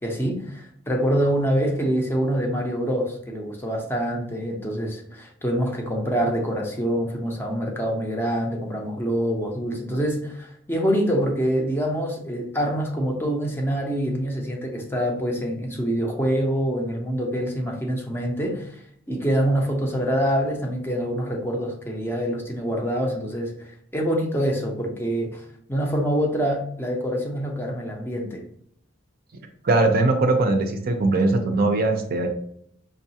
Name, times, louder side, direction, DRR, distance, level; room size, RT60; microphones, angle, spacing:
voice 1, 0.0-28.4, equal, 10° left, 1 dB, 0.5 m, -25 dB
voice 2, 29.6-32.3, right 2 dB, 45° right, 5 dB, 0.5 m, -20 dB
5.3 x 2.3 x 2.8 m, 0.68 s
head